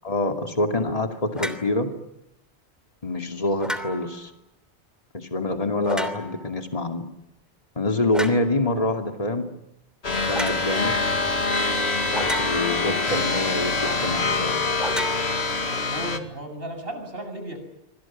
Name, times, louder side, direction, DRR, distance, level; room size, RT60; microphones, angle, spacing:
voice 1, 0.0-1.9 3.0-4.3 5.1-7.0 7.8-9.4 10.3-11.0 12.4-14.6, left 2 dB, 35° left, 4 dB, 2.6 m, -26 dB
sound 1, 1.4-1.7 3.6-4.2 5.8-6.5 8.1-8.5 10.3-10.6 12.1-12.9 14.8-15.9, equal, ahead, 2.9 m, -32 dB
sound 2, 10.0-16.2, left 3 dB, 70° left, 2.4 m, -25 dB
voice 2, 15.5-17.6, right 1 dB, 55° right, 6 dB, 7.6 m, -35 dB
27.0 x 26.0 x 7.4 m, 0.87 s
omnidirectional pair, 1.1 m